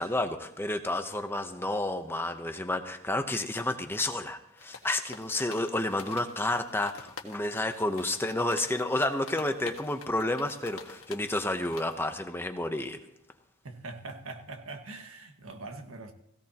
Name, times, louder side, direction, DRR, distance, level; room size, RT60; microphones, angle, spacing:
voice 1, 0.0-13.0, left 1 dB, 10° left, 0.8 m, -30 dB
sound 1, 4.6-12.1, left 5 dB, 80° left, 1.6 m, -48 dB
voice 2, 13.6-16.1, right 3 dB, 80° right, 1.6 m, -42 dB
17.0 x 16.5 x 2.9 m
head